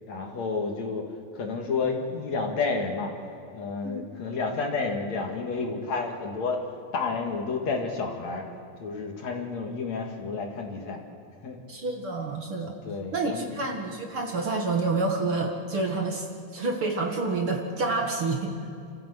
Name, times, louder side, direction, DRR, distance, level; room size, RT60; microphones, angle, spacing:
voice 1, 0.1-1.1 1.3-3.1 3.5-6.6 6.9-8.5 8.8-11.0 11.4-11.6 12.8-13.6, left 4 dB, 60° left, 2 dB, 3.2 m, -30 dB
voice 2, 11.7-12.7 13.1-16.3 16.5-18.6, right 3 dB, 45° right, 1 dB, 2.4 m, -28 dB
29.5 x 14.5 x 8.1 m, 2.6 s
omnidirectional pair, 3.7 m